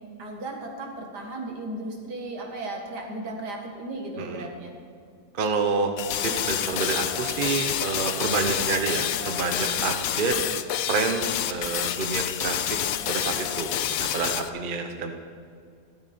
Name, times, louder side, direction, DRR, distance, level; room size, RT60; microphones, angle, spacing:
voice 1, 0.0-4.7, right 2 dB, 70° right, 1 dB, 2.2 m, -35 dB
voice 2, 4.2-4.5 5.3-5.9 6.2-10.4 10.9-12.8 13.1-13.7 14.0-15.1, right 4 dB, 35° right, 5 dB, 0.9 m, -28 dB
sound 1, 6.0-14.5, left 11 dB, 65° left, 0.9 m, -28 dB
15.5 x 12.5 x 4.3 m, 2.4 s
omnidirectional pair, 1.9 m